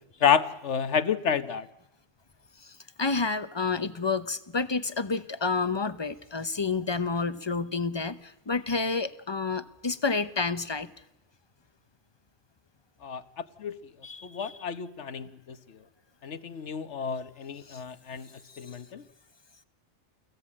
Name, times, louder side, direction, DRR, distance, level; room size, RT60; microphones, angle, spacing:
voice 1, 0.2-1.7 13.0-13.2 13.6-13.8 14.2-15.6 16.2-18.3 18.6-19.0, left 7 dB, 60° left, 11 dB, 1.4 m, -29 dB
voice 2, 2.6-10.9 14.0-14.7 17.7-17.8 18.7-18.8, left 4 dB, 25° left, 13 dB, 0.8 m, -30 dB
29.5 x 17.5 x 8.7 m, 0.91 s
omnidirectional pair, 1.4 m